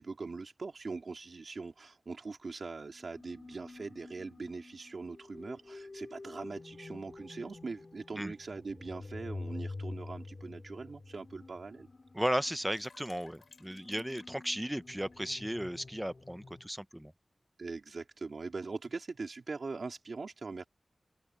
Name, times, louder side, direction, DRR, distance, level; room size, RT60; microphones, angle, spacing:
voice 1, 0.0-11.9 17.6-20.7, right 4 dB, 75° right, 2.6 m, -42 dB
sound 1, 2.9-16.7, left 3 dB, 50° left, 3.3 m, -48 dB
sound 2, 9.4-9.5 10.2-10.3 10.7-10.8 11.0-11.6 12.0-15.2, left 4 dB, 80° left, 6.0 m, -59 dB
voice 2, 12.1-17.1, equal, 5° right, 0.7 m, -35 dB
open air
wide cardioid pair, 85°, 0 cm